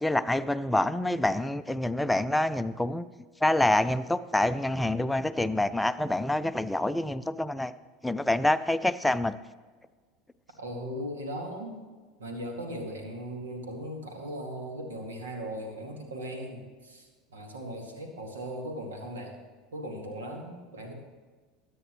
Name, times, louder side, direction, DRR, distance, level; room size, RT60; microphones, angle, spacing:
voice 1, 0.0-3.0 3.4-7.7 8.0-9.4, left 1 dB, 5° left, 12 dB, 0.5 m, -26 dB
voice 2, 10.6-11.8 12.2-19.3 19.7-20.9, equal, 70° right, 3 dB, 2.2 m, -38 dB
21.5 x 9.3 x 3.1 m, 1.4 s
figure-of-eight pair, 75°, 0 cm